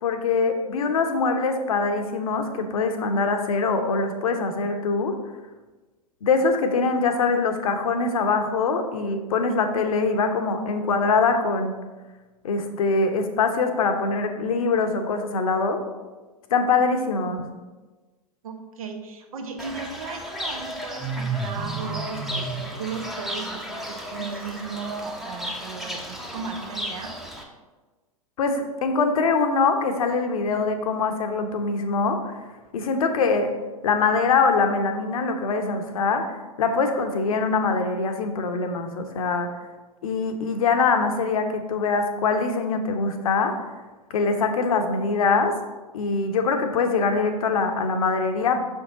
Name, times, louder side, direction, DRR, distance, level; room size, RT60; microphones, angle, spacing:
voice 1, 0.0-5.1 6.2-11.8 12.4-15.8 16.5-17.4 28.4-32.3 32.7-33.5 33.8-39.6 40.0-43.5 44.1-45.5 45.9-48.6, left 4 dB, 65° left, 6 dB, 0.9 m, -23 dB
voice 2, 18.4-27.1, right 5 dB, 65° right, 4 dB, 1.1 m, -36 dB
Fowl / Bird, 19.6-27.4, right 1 dB, ahead, 0.8 m, -33 dB
6.0 x 5.4 x 3.8 m, 1.3 s
figure-of-eight pair, 100°, 19 cm